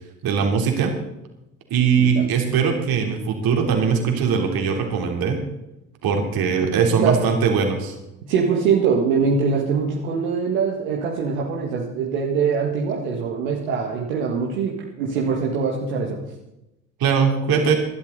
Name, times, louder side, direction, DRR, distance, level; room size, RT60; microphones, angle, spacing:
voice 1, 0.2-0.9 1.7-5.4 6.0-8.0 17.0-17.7, right 6 dB, 60° right, 3 dB, 3.4 m, -20 dB
voice 2, 2.0-2.3 6.7-7.2 8.3-16.2, right 5 dB, 80° right, -2 dB, 2.1 m, -23 dB
19.5 x 12.0 x 4.1 m, 0.88 s
hypercardioid pair, 60°, 40 cm